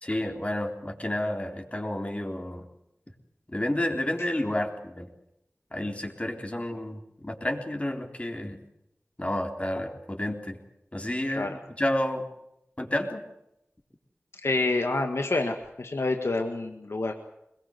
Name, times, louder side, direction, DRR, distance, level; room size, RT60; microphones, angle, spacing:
voice 1, 0.0-2.7 3.5-5.1 5.7-8.6 9.2-10.6 10.9-12.2 12.8-13.3, left 1 dB, 30° left, 3 dB, 3.9 m, -30 dB
voice 2, 14.4-17.1, left 2 dB, 75° left, 5 dB, 1.8 m, -28 dB
22.5 x 21.5 x 8.1 m, 0.82 s
wide cardioid pair, 40°, 5 cm